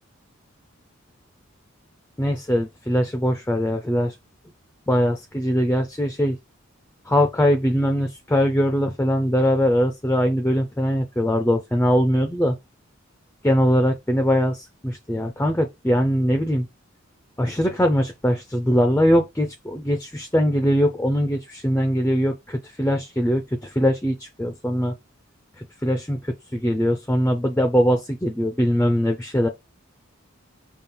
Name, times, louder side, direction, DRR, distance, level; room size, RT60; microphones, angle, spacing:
voice 1, 2.2-4.1 4.9-6.4 7.1-12.6 13.4-16.7 17.4-24.9 25.6-26.2 26.5-29.5, equal, 10° left, 0.4 m, -21 dB
5.4 x 2.4 x 3.7 m
head